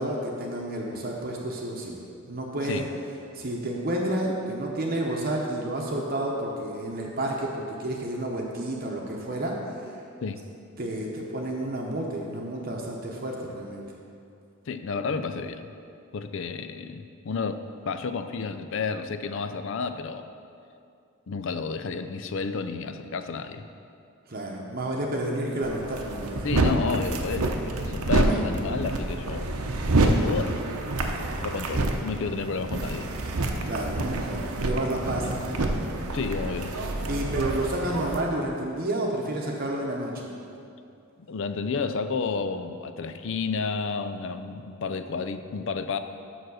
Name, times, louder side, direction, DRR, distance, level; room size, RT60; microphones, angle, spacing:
voice 1, 0.0-2.0 2.3-2.9 3.3-9.5 9.8-9.9 10.8-13.8 24.3-26.5 28.2-28.4 33.6-35.3 37.1-40.3, right 1 dB, 40° right, -1 dB, 0.8 m, -30 dB
voice 2, 14.7-15.7 16.1-20.3 21.3-23.6 26.4-29.6 30.0-30.6 31.4-33.1 35.2-35.4 36.1-36.7 41.2-46.0, left 4 dB, 55° left, 10 dB, 0.4 m, -31 dB
sound 1, 25.6-38.2, right 2 dB, 80° right, 0.8 m, -27 dB
7.0 x 6.2 x 6.3 m, 2.5 s
head